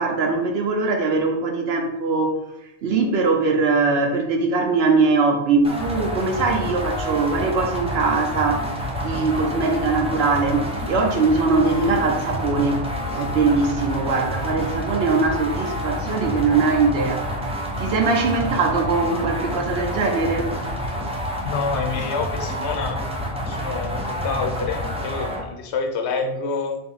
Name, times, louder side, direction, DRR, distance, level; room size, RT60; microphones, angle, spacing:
voice 1, 0.0-2.4 2.8-8.7 9.0-12.9 13.1-17.4 17.8-20.5, right 4 dB, 75° right, 3 dB, 0.9 m, -21 dB
sound 1, 5.6-25.4, equal, 10° right, 0.4 m, -28 dB
voice 2, 21.4-23.0 23.5-26.8, left 4 dB, 90° left, 5 dB, 0.9 m, -27 dB
3.7 x 2.8 x 3.9 m, 0.91 s
omnidirectional pair, 1.1 m